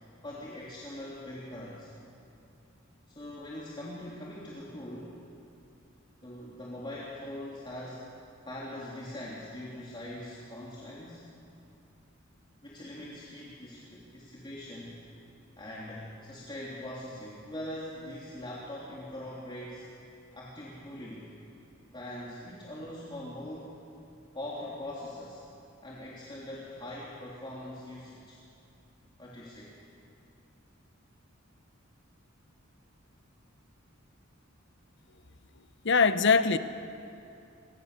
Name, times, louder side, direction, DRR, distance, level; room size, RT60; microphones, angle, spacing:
voice 1, 0.2-1.9 3.1-5.2 6.2-8.1 8.4-11.2 12.6-15.0 15.6-19.8 20.3-21.3 21.9-23.7 24.3-25.4 25.8-28.4 29.2-29.7, left 1 dB, 25° left, -6 dB, 3.2 m, -42 dB
voice 2, 35.8-36.6, left 5 dB, 60° left, 11 dB, 1.0 m, -22 dB
28.5 x 24.0 x 6.8 m, 2.7 s
head